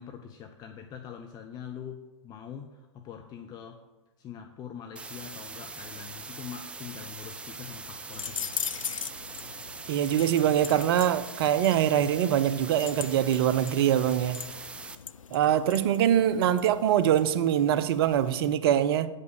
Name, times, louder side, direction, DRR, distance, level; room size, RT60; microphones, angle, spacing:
voice 1, 0.0-3.9 4.2-8.5, left 8 dB, 25° left, 0.7 m, -43 dB
sound 1, 5.0-15.0, right 4 dB, 5° right, 0.3 m, -42 dB
sound 2, 8.1-18.5, left 7 dB, 85° left, 0.4 m, -41 dB
voice 2, 9.9-14.4 15.3-19.1, right 10 dB, 50° right, 0.6 m, -24 dB
9.2 x 5.3 x 6.7 m
figure-of-eight pair, 105°, 16 cm